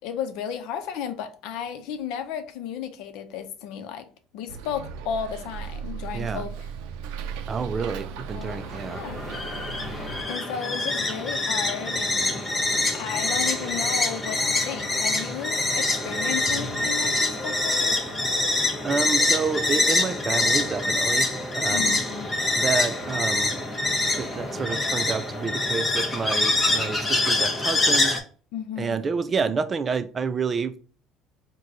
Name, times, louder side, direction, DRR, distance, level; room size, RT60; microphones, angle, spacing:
voice 1, 0.0-4.1 4.3-6.7 8.3-9.3 10.3-12.5 12.9-18.0 21.7-22.3 28.5-29.0, left 8 dB, 75° left, 0.6 m, -34 dB
Bus, 4.5-10.2, right 6 dB, 90° right, 0.4 m, -36 dB
voice 2, 6.1-6.5 7.5-9.0 18.8-21.3 21.5-22.0 22.6-23.6 24.2-28.2 28.8-30.7, right 5 dB, 30° right, 0.4 m, -29 dB
sound 1, 8.5-28.2, left 2 dB, 25° left, 0.8 m, -25 dB
4.7 x 2.2 x 3.8 m
cardioid pair, 110°, 0 cm